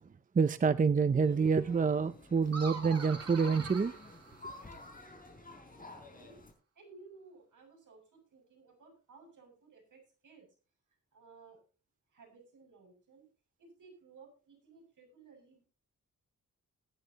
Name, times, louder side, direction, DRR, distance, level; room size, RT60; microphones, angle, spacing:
voice 1, 0.4-3.9, right 5 dB, 25° right, 0.5 m, -27 dB
sound 1, 1.2-6.5, left 3 dB, 25° left, 4.5 m, -51 dB
sound 2, 2.5-5.0, right 4 dB, 50° right, 3.0 m, -44 dB
voice 2, 5.8-6.4 6.8-10.5 11.1-11.6 12.1-13.2 13.6-15.7, right 4 dB, 70° right, 6.9 m, -58 dB
21.0 x 10.0 x 2.9 m
wide cardioid pair, 115°, 32 cm